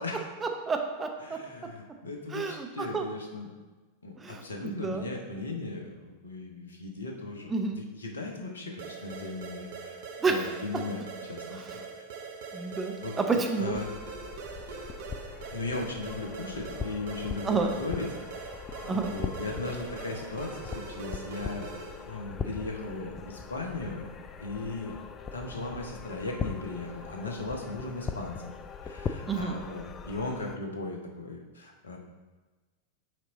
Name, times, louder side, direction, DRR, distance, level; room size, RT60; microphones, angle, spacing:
voice 1, 0.4-1.4 2.3-3.0 4.2-5.0 7.5-7.8 10.2-10.4 11.5-11.7 12.5-13.8 17.4-17.7 18.9-19.1 29.3-29.6, right 4 dB, 15° right, 4 dB, 0.7 m, -30 dB
voice 2, 1.2-3.5 4.0-10.0 10.3-11.6 13.0-13.9 15.5-18.1 18.8-24.1 24.4-25.0 25.3-28.5 28.8-32.0, left 2 dB, 70° left, 1 dB, 1.0 m, -37 dB
sound 1, 8.8-22.1, right 5 dB, 55° right, 0.7 m, -42 dB
sound 2, 13.7-30.6, left 6 dB, 25° left, 0.4 m, -40 dB
6.4 x 4.5 x 4.0 m, 1.2 s
figure-of-eight pair, 90°, 0 cm